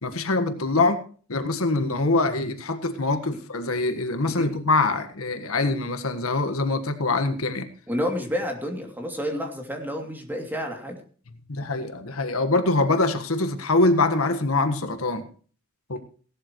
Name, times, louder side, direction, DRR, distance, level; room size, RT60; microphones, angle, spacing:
voice 1, 0.0-1.0 1.3-7.7 11.5-15.3 15.9-16.0, left 2 dB, 90° left, 8 dB, 1.6 m, -24 dB
voice 2, 7.9-11.0, equal, 10° right, 3 dB, 2.8 m, -30 dB
17.5 x 12.5 x 3.1 m, 0.42 s
head